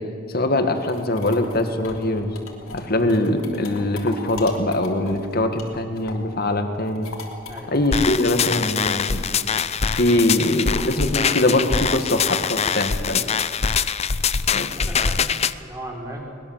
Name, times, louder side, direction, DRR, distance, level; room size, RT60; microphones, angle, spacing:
voice 1, 0.3-2.4 2.7-7.1 7.7-9.2 9.9-13.2 14.5-14.7, left 1 dB, 45° left, 6 dB, 1.9 m, -22 dB
sound 1, 0.5-6.4 6.7-13.0, left 3 dB, 80° left, 3.3 m, -40 dB
sound 2, 7.9-15.5, left 6 dB, 30° left, 0.5 m, -23 dB
voice 2, 14.6-16.3, right 1 dB, 15° right, -3 dB, 4.7 m, -37 dB
21.5 x 20.5 x 7.5 m, 2.4 s
head